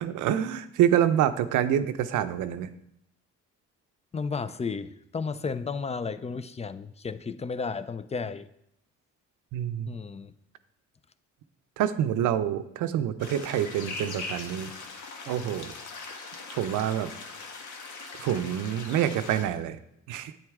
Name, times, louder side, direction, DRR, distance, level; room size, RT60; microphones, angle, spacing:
voice 1, 0.0-2.7 9.5-9.9 11.8-14.7 15.3-15.7 16.5-17.1 18.2-19.8 20.1-20.3, right 10 dB, 85° right, 11 dB, 0.6 m, -27 dB
voice 2, 4.1-8.5 9.9-10.3, left 5 dB, 20° left, 14 dB, 0.5 m, -33 dB
sound 1, 13.2-19.4, left 4 dB, 75° left, 1.3 m, -40 dB
8.9 x 7.9 x 3.6 m, 0.77 s
cardioid pair, 90°, 30 cm